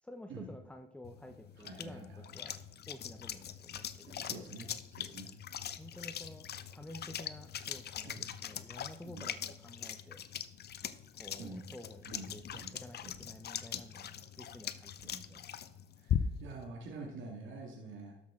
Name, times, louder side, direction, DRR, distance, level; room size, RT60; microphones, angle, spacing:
voice 1, 0.0-2.6 2.9-4.5 5.8-6.5 6.7-10.2 11.1-15.4, left 1 dB, 5° left, 5 dB, 0.6 m, -51 dB
sound 1, 1.0-16.6, left 9 dB, 55° left, 0.7 m, -41 dB
voice 2, 1.6-2.2 4.1-5.3 8.0-8.3 9.0-9.3 11.4-11.7 12.1-12.8 13.0-13.2 13.7-13.9 15.0-15.4 16.0-18.2, right 3 dB, 75° right, 0 dB, 1.9 m, -47 dB
12.5 x 6.5 x 3.7 m, 0.98 s
cardioid pair, 90°, 20 cm